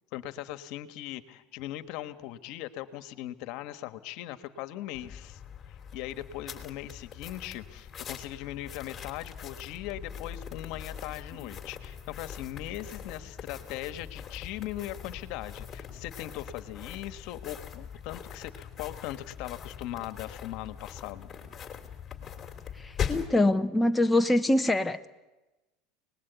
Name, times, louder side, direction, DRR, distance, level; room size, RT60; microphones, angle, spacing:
voice 1, 0.1-5.4 5.9-21.3, left 14 dB, 65° left, 1.5 m, -39 dB
sound 1, 4.9-23.4, left 7 dB, 30° left, 3.1 m, -41 dB
voice 2, 22.7-25.1, left 1 dB, 10° left, 0.9 m, -24 dB
29.5 x 20.0 x 8.2 m
supercardioid pair, 120°, 0 cm